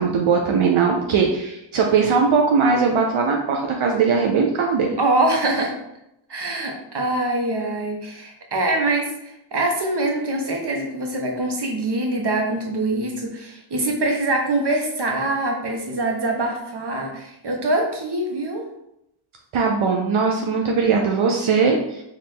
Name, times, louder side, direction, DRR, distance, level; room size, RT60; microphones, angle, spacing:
voice 1, 0.0-5.0 19.5-22.0, right 5 dB, 85° right, 1 dB, 0.5 m, -20 dB
voice 2, 5.0-5.7 6.3-18.7, right 2 dB, 55° right, 1 dB, 0.9 m, -24 dB
4.2 x 2.5 x 3.4 m, 0.83 s
wide cardioid pair, 50°, 48 cm